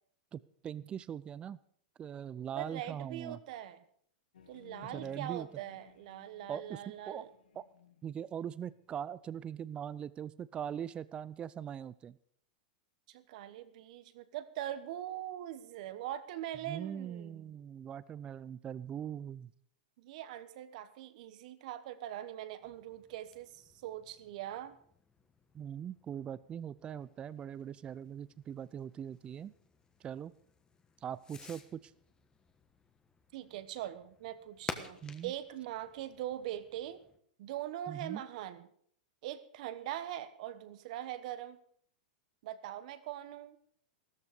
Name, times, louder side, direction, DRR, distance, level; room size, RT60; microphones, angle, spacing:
voice 1, 0.3-1.6 2.0-3.4 4.8-5.5 6.5-7.3 7.6-7.7 8.0-12.2 16.6-19.5 25.5-29.5 30.0-30.3 31.0-31.9 35.0-35.3 37.9-38.2, right 9 dB, 20° right, 18 dB, 0.5 m, -41 dB
voice 2, 2.6-3.8 4.5-7.3 13.1-17.5 20.0-24.8 33.3-37.0 37.4-38.7 39.2-41.6 42.4-43.6, right 12 dB, 60° right, 12 dB, 1.2 m, -42 dB
sound 1, 4.3-9.2, left 9 dB, 85° left, 1.4 m, -59 dB
Fireworks, 22.6-37.2, left 5 dB, 15° left, 1.3 m, -52 dB
14.5 x 13.5 x 5.1 m, 0.63 s
hypercardioid pair, 125°, 5 cm